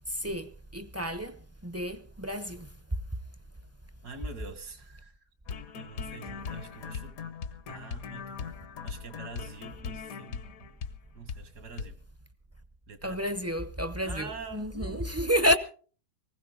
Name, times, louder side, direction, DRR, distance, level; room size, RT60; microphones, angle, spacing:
voice 1, 0.1-2.7 13.0-15.6, equal, 20° right, 0.4 m, -30 dB
voice 2, 4.0-5.2 5.8-7.2 7.7-8.6 8.8-10.7 11.1-12.0 12.9-13.4 14.0-15.1, right 4 dB, 80° right, 2.4 m, -45 dB
sound 1, 5.5-11.0 11.3-11.5 11.8-11.9, left 6 dB, 65° left, 1.3 m, -39 dB
19.5 x 16.0 x 3.9 m
omnidirectional pair, 1.7 m